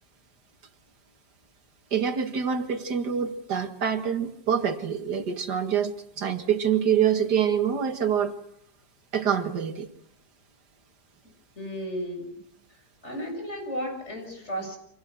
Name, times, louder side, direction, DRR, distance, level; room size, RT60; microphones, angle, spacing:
voice 1, 1.9-8.3 9.1-9.9 14.6-14.7, right 8 dB, 80° right, 7 dB, 2.3 m, -26 dB
voice 2, 11.6-12.3 13.0-14.8, equal, 40° left, 4 dB, 7.0 m, -33 dB
29.5 x 26.0 x 6.3 m, 0.74 s
omnidirectional pair, 1.7 m